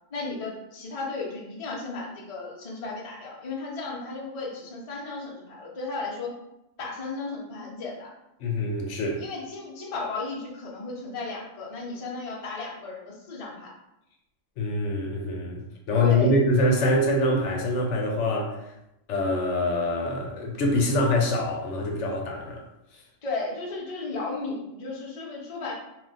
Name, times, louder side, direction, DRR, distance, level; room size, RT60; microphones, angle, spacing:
voice 1, 0.1-6.3 6.8-8.1 9.2-13.7 16.0-16.3 23.2-25.7, left 3 dB, 40° left, -3 dB, 0.5 m, -34 dB
voice 2, 8.4-9.2 14.6-15.6 15.9-18.5 19.1-22.6, left 1 dB, 75° left, 1 dB, 0.9 m, -24 dB
2.4 x 2.2 x 3.8 m, 0.87 s
omnidirectional pair, 1.3 m